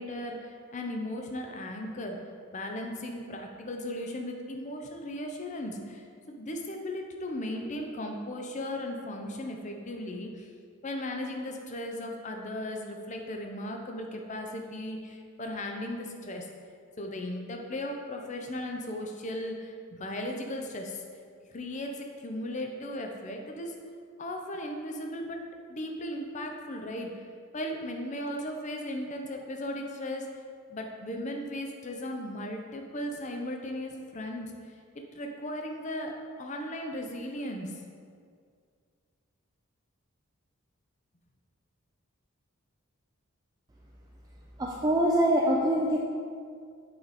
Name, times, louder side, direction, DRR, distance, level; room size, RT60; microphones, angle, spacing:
voice 1, 0.0-2.2 2.5-10.5 10.8-16.5 17.0-21.0 21.4-23.7 24.2-27.2 27.5-30.3 30.7-34.5 35.1-37.8, left 1 dB, 35° left, 3 dB, 0.6 m, -36 dB
voice 2, 44.6-46.0, right 1 dB, 20° right, -2 dB, 0.4 m, -24 dB
7.7 x 4.8 x 4.2 m, 2.2 s
head